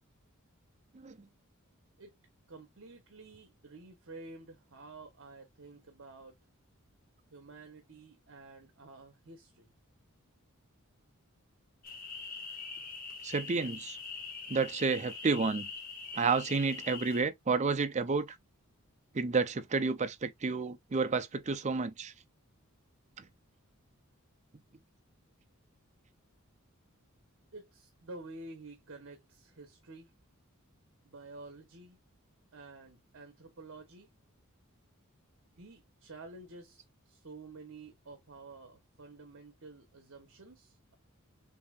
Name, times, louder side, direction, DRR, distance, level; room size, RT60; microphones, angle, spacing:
voice 1, 2.5-6.4 7.3-9.7 27.5-30.1 31.0-32.0 32.5-34.1 35.6-40.9, right 3 dB, 60° right, 1.1 m, -50 dB
sound 1, 11.8-17.2, left 4 dB, 40° left, 1.5 m, -43 dB
voice 2, 13.2-14.0 14.5-15.7 16.2-18.3 19.1-22.1, right 4 dB, 35° right, 0.5 m, -30 dB
6.9 x 2.8 x 2.4 m
head